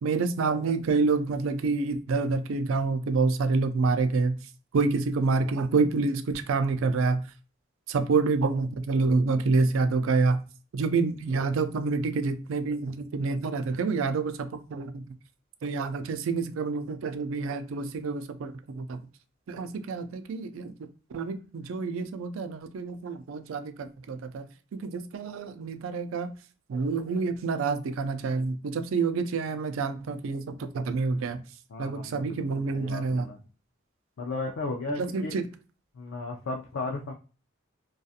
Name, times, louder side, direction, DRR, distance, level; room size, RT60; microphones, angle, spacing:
voice 1, 0.0-4.4 4.7-7.2 7.9-10.4 10.7-15.0 15.6-19.0 19.5-20.7 21.1-24.5 24.7-26.3 26.7-31.4 31.8-33.3 34.9-35.5, right 4 dB, 80° right, 0.4 m, -27 dB
voice 2, 31.7-33.4 34.2-35.4 36.0-37.1, left 3 dB, 75° left, 0.4 m, -35 dB
2.6 x 2.3 x 2.4 m
head